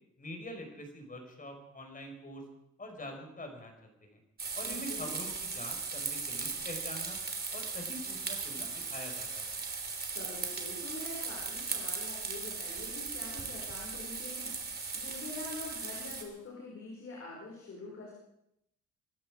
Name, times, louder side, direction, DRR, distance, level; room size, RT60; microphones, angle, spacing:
voice 1, 0.2-2.4 2.8-4.2 4.5-7.2 7.5-9.6, left 1 dB, 25° left, 4 dB, 5.1 m, -45 dB
sound 1, 4.4-16.2, right 4 dB, 30° right, 3.3 m, -38 dB
voice 2, 4.7-5.1 10.1-18.1, left 2 dB, 50° left, -3 dB, 5.7 m, -45 dB
24.0 x 12.0 x 5.0 m, 0.78 s
cardioid pair, 90°, 30 cm